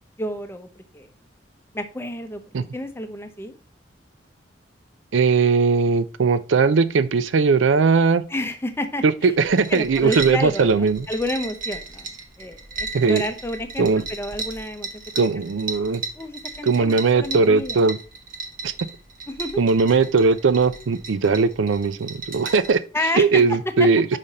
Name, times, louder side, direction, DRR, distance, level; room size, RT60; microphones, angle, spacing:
voice 1, 0.2-1.1 1.7-2.4 2.7-3.5 8.3-9.3 9.7-12.1 12.4-15.3 16.2-17.8 19.3-19.6 22.9-23.4 23.8-23.9, left 1 dB, 15° left, 0.7 m, -30 dB
voice 2, 5.1-8.2 9.0-11.1 12.9-13.2 13.8-14.0 15.2-16.0 16.6-18.0 18.6-18.7 19.6-22.8 23.2-24.1, right 4 dB, 85° right, 0.5 m, -19 dB
sound 1, 9.4-22.7, right 3 dB, 45° right, 1.1 m, -35 dB
5.7 x 5.0 x 4.1 m
head